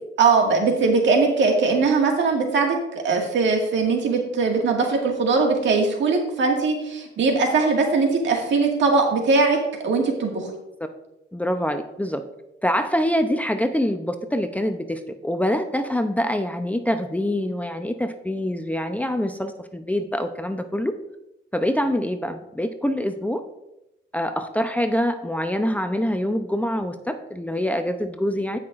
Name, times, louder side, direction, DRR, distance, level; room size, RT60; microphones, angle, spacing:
voice 1, 0.2-9.6 9.8-10.5, right 4 dB, 70° right, 1 dB, 2.0 m, -20 dB
voice 2, 11.3-12.2 12.6-20.9 21.5-23.4 24.1-28.6, equal, 5° left, 7 dB, 0.6 m, -25 dB
17.5 x 5.8 x 2.5 m, 0.90 s
cardioid pair, 90°, 20 cm